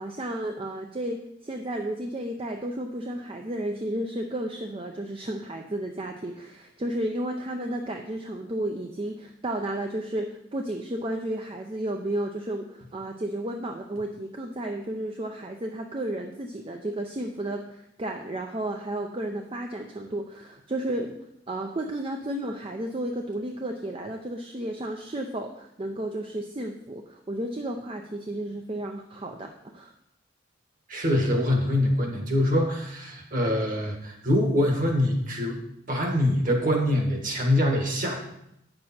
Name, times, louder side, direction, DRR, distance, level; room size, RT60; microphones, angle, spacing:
voice 1, 0.0-21.1 21.5-29.9, right 1 dB, 30° right, 3 dB, 0.5 m, -32 dB
voice 2, 30.9-35.6 35.9-38.2, left 1 dB, 45° right, 2 dB, 1.6 m, -24 dB
8.7 x 6.7 x 4.3 m, 0.78 s
head